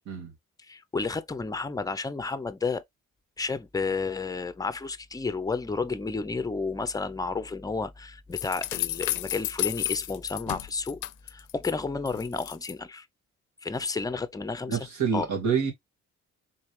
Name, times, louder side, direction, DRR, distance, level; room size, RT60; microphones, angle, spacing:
voice 1, 0.6-2.8 3.4-13.1 13.6-14.8 15.1-15.3, left 4 dB, 10° left, 0.5 m, -31 dB
sound 1, 8.3-11.7 12.1-12.7, left 16 dB, 80° left, 0.5 m, -32 dB
voice 2, 14.7-15.7, right 6 dB, 70° right, 2.2 m, -27 dB
4.0 x 3.2 x 3.0 m
cardioid pair, 90°, 30 cm